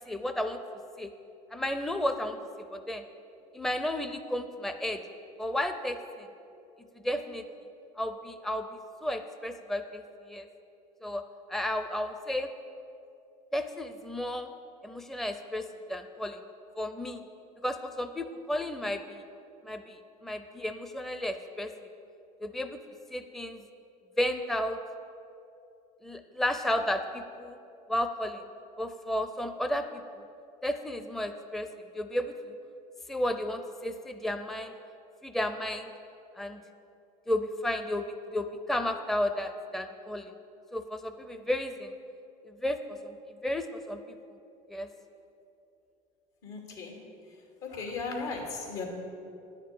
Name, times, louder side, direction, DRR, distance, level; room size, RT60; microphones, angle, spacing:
voice 1, 0.1-0.6 1.0-1.1 1.5-2.4 2.7-3.0 3.5-5.0 5.4-6.3 7.0-7.4 8.0-8.7 9.0-10.5 11.0-11.2 11.5-12.5 13.5-14.5 14.8-16.4 16.8-17.2 17.6-19.2 19.6-21.7 22.4-22.8 23.1-23.6 24.2-24.8 26.0-27.6 27.9-28.4 28.8-30.0 30.6-31.7 31.9-32.5 33.1-34.7 35.2-35.9 36.4-36.6 37.3-40.3 40.7-41.9 42.5-43.2 43.4-44.0 44.7-44.9, left 1 dB, ahead, 8 dB, 0.5 m, -33 dB
voice 2, 46.4-47.0 47.6-48.8, left 4 dB, 75° left, 1 dB, 2.5 m, -36 dB
10.5 x 6.6 x 8.5 m, 2.7 s
supercardioid pair, 95°, 18 cm